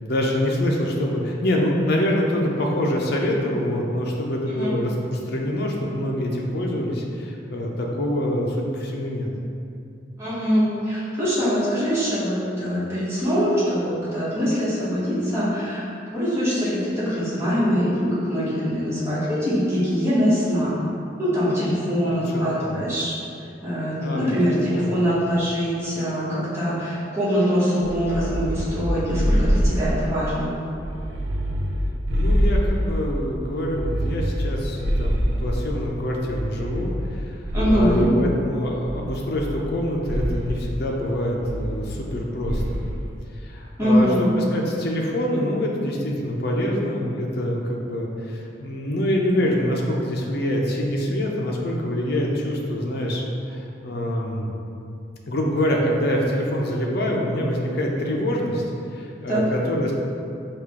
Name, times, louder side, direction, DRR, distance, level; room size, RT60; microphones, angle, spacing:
voice 1, 0.0-9.3 22.0-22.8 24.0-24.9 32.1-37.3 37.7-42.9 43.4-54.5 55.3-58.6 58.9-59.9, left 1 dB, 60° left, -1 dB, 0.6 m, -25 dB
voice 2, 10.2-20.7 21.2-23.1 23.6-30.5 37.5-38.1 43.8-44.2 59.3-59.4, equal, 15° right, -11 dB, 1.3 m, -23 dB
sound 1, 27.8-30.2 30.7-33.2 33.6-35.8 36.3-38.2 38.8-39.8 40.0-40.5 41.4-42.1 42.4-42.9, equal, 80° right, 0.4 m, -25 dB
4.8 x 2.4 x 3.6 m, 2.6 s
head